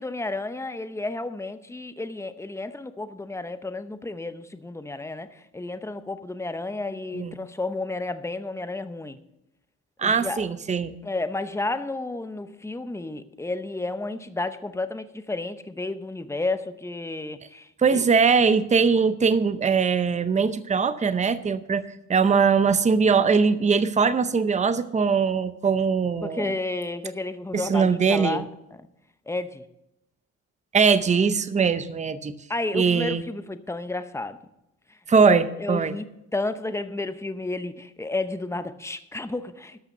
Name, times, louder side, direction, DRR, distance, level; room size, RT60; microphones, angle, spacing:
voice 1, 0.0-9.2 10.0-10.5 11.0-18.0 22.3-22.5 26.2-28.4 28.7-28.8 29.3-29.6 32.5-34.4 35.2-39.8, left 2 dB, 10° left, 0.7 m, -32 dB
voice 2, 10.0-10.9 17.8-21.8 22.1-26.5 27.5-28.4 30.7-32.3 32.7-33.2 35.1-35.9, right 5 dB, 25° right, 0.7 m, -21 dB
13.0 x 5.8 x 6.7 m
cardioid pair, 90°, 30 cm